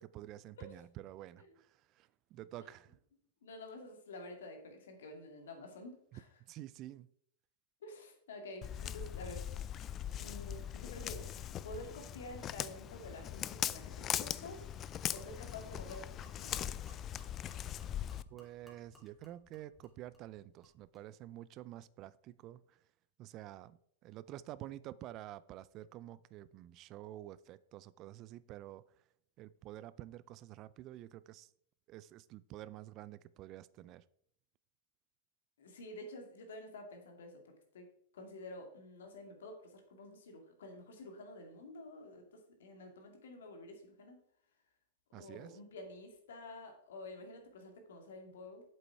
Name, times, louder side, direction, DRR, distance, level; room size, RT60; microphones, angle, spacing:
voice 1, 0.0-3.0 6.1-7.1 18.3-22.8 23.2-28.8 29.4-31.5 31.9-34.0 45.1-45.6, right 14 dB, 40° right, 0.4 m, -49 dB
voice 2, 3.4-6.3 7.8-9.5 10.2-11.3 11.6-14.7 15.1-16.8 35.6-37.9 38.1-44.2 45.1-48.6, left 1 dB, 75° left, 2.3 m, -49 dB
Walk footsteps, 8.6-18.2, left 10 dB, 30° left, 0.4 m, -40 dB
Gurgling / Liquid, 14.2-21.1, left 1 dB, 5° left, 2.9 m, -64 dB
7.6 x 7.6 x 4.7 m
hypercardioid pair, 105°, 0 cm